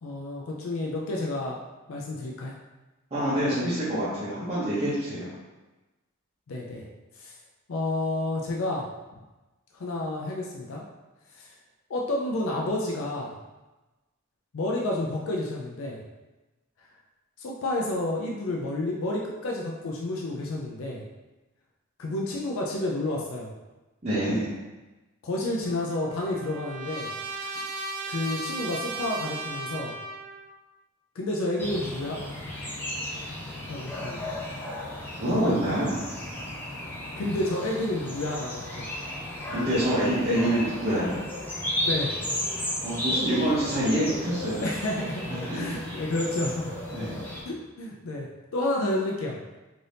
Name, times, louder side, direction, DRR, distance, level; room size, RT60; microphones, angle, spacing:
voice 1, 0.0-1.6 1.9-2.5 6.5-6.9 7.2-7.3 7.7-8.9 9.7-10.8 11.3-11.5 11.9-13.4 14.5-16.0 17.4-21.0 22.0-23.5 25.2-27.1 28.1-29.9 31.2-32.2 33.7-34.3 37.2-38.9 41.8-42.2 44.6-46.7 47.4-48.3 48.5-49.4, left 1 dB, 80° left, -2 dB, 0.4 m, -30 dB
voice 2, 3.1-5.3 24.0-24.5 27.4-27.5 35.2-36.0 39.5-41.2 42.8-44.7 45.3-45.9 46.9-47.1, right 1 dB, 30° right, -11 dB, 0.7 m, -26 dB
Trumpet, 25.7-30.5, right 2 dB, 85° right, 0.3 m, -36 dB
sound 1, 31.6-47.4, left 1 dB, 10° left, 0.5 m, -34 dB
2.7 x 2.6 x 3.3 m, 1.1 s
head